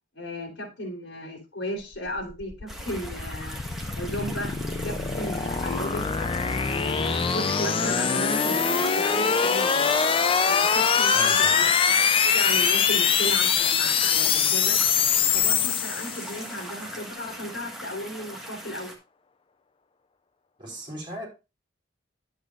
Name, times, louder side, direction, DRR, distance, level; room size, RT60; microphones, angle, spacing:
voice 1, 0.1-3.6 3.9-4.5 4.8-6.1 6.7-10.0 10.4-11.7 12.3-14.8 15.3-18.9, left 1 dB, 75° left, 3.9 m, -35 dB
sound 1, 2.0-16.5, left 6 dB, 30° left, 0.4 m, -23 dB
sound 2, 2.7-18.9, right 1 dB, ahead, 1.5 m, -40 dB
voice 2, 11.1-11.7 20.6-21.3, equal, 25° right, 4.2 m, -38 dB
10.5 x 8.1 x 2.5 m
head